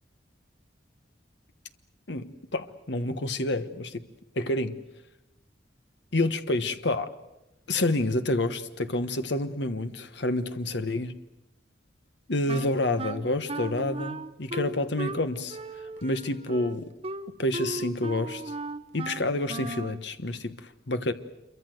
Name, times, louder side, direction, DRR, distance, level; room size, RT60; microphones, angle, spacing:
voice 1, 2.1-4.0 4.3-4.8 6.1-7.1 7.7-11.1 12.3-15.6 16.0-16.9 17.4-18.5 18.9-21.1, left 2 dB, 70° left, 9 dB, 1.3 m, -28 dB
Wind instrument woodwind instrument, 12.5-20.0, right 2 dB, 30° right, 0.8 m, -37 dB
27.5 x 23.5 x 7.8 m, 0.92 s
head